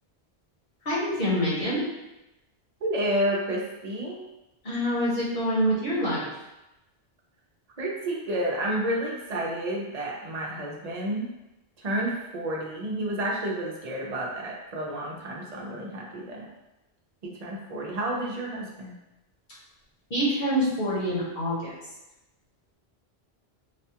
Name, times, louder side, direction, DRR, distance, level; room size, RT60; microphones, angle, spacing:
voice 1, 0.8-1.8 4.6-6.3 20.1-21.7, equal, 65° left, -7 dB, 1.3 m, -26 dB
voice 2, 2.8-4.2 7.8-11.3 11.8-16.5 17.2-18.9, right 1 dB, 45° right, -2 dB, 0.6 m, -30 dB
4.1 x 2.3 x 2.8 m, 0.96 s
omnidirectional pair, 1.1 m